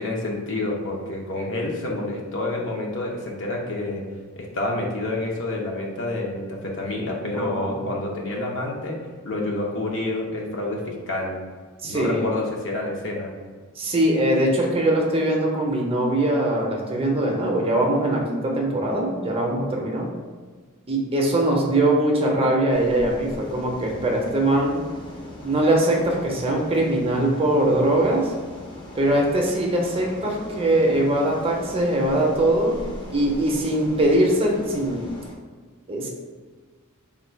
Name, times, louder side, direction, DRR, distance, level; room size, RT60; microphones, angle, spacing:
voice 1, 0.0-4.0 4.4-11.4 11.8-13.3, left 2 dB, 60° left, -1 dB, 0.8 m, -28 dB
voice 2, 7.3-7.8 11.8-12.2 13.8-20.1 20.9-24.8 25.4-28.3 29.0-32.8 33.1-35.1 35.9-36.1, right 1 dB, 25° right, -1 dB, 0.6 m, -22 dB
sound 1, 22.7-35.3, equal, 20° left, 0.6 m, -40 dB
3.7 x 2.3 x 4.4 m, 1.5 s
head